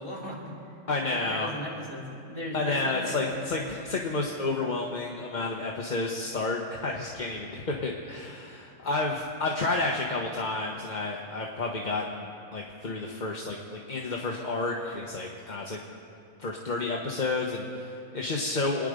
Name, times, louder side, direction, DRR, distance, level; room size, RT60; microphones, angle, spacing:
voice 1, 0.0-0.7 1.1-3.6, left 1 dB, 15° left, -5 dB, 3.9 m, -37 dB
voice 2, 0.9-1.5 2.5-15.8 16.4-18.9, left 3 dB, 35° left, 0 dB, 1.0 m, -31 dB
26.5 x 10.0 x 5.1 m, 2.7 s
omnidirectional pair, 1.7 m